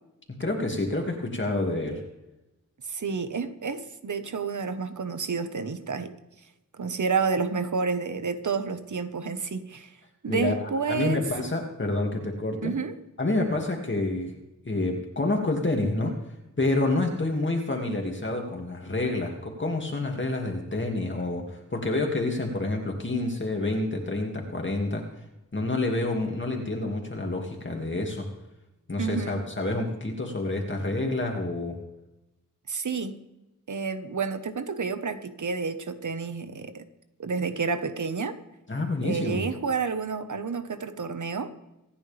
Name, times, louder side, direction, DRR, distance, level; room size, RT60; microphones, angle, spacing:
voice 1, 0.4-2.0 10.3-12.7 13.2-14.3 14.6-16.2 16.6-25.0 25.5-28.3 28.9-31.8 38.7-39.4, left 2 dB, 35° left, 1 dB, 2.5 m, -28 dB
voice 2, 2.9-6.2 6.8-9.9 10.2-11.3 12.6-12.9 29.0-29.4 32.7-33.2 33.7-36.8 37.2-38.4 39.0-41.5, right 5 dB, 60° right, 9 dB, 1.4 m, -30 dB
26.5 x 10.0 x 3.5 m, 0.97 s
wide cardioid pair, 75°, 34 cm